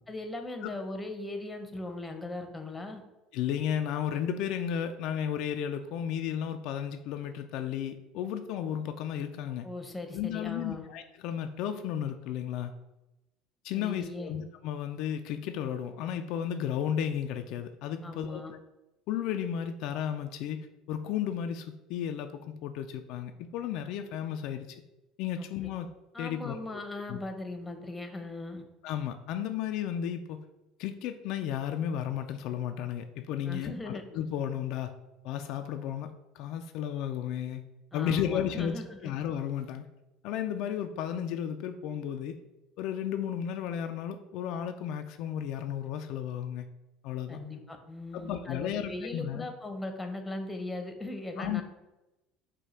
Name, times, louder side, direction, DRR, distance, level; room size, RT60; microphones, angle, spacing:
voice 1, 0.1-3.0 9.6-10.9 13.7-14.3 18.0-18.5 25.4-25.5 26.1-28.6 33.5-34.0 37.9-39.1 47.3-51.6, left 2 dB, 10° left, 5 dB, 0.8 m, -39 dB
voice 2, 3.3-9.7 10.1-12.7 13.6-18.4 19.1-24.8 25.2-25.9 26.2-26.8 27.1-27.2 28.8-30.4 30.8-34.9 35.2-37.6 37.9-39.8 40.2-42.4 42.8-46.6 47.0-47.4 48.1-49.4 51.4-51.6, left 9 dB, 70° left, 7 dB, 0.3 m, -33 dB
4.9 x 2.2 x 4.2 m, 0.97 s
supercardioid pair, 85°, 0 cm